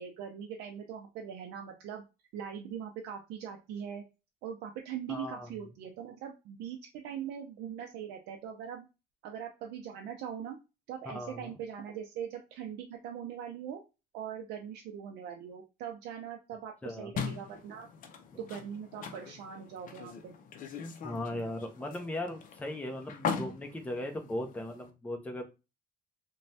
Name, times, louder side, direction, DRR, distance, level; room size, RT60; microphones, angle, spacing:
voice 1, 0.0-2.0 2.3-4.0 4.4-8.9 9.2-10.6 10.9-13.8 14.1-17.9 18.4-20.3, right 8 dB, 80° right, 2 dB, 0.5 m, -41 dB
voice 2, 5.1-5.5 11.1-11.5 16.8-17.1 18.3-18.4 21.0-25.5, left 1 dB, 10° left, 4 dB, 0.6 m, -38 dB
sound 1, 17.2-24.9, left 6 dB, 50° left, 0.5 m, -41 dB
3.1 x 2.2 x 2.6 m, 0.28 s
cardioid pair, 110°, 17 cm